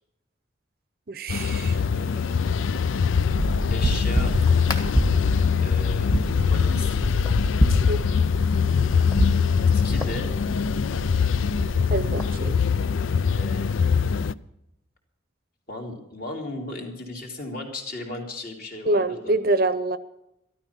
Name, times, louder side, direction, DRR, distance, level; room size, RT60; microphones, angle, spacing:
voice 1, 1.1-1.8 7.9-8.0 11.9-12.5 18.9-20.0, right 2 dB, 50° right, 13 dB, 0.7 m, -25 dB
sound 1, 1.3-14.3, left 6 dB, 85° left, 0.4 m, -23 dB
voice 2, 1.7-2.5 3.7-4.3 5.6-6.1 6.4-7.0 9.6-10.5 13.0-13.7 15.7-19.4, left 2 dB, 45° left, 0 dB, 3.1 m, -36 dB
sound 2, 3.2-12.4, equal, 20° left, 1.6 m, -28 dB
13.5 x 13.0 x 5.8 m, 0.85 s
head